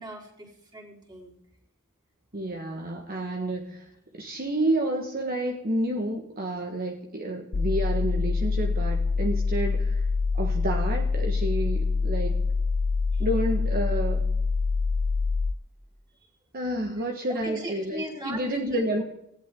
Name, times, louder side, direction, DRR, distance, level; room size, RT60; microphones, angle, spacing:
voice 1, 0.0-1.3 13.1-13.2 17.3-19.0, right 1 dB, 20° right, -1 dB, 4.4 m, -39 dB
voice 2, 2.3-10.1 10.3-12.4 13.2-14.3 16.5-19.0, right 1 dB, 45° right, 2 dB, 1.6 m, -30 dB
sound 1, 7.5-15.5, left 4 dB, 75° left, 0.7 m, -25 dB
19.5 x 17.0 x 3.8 m, 0.77 s
head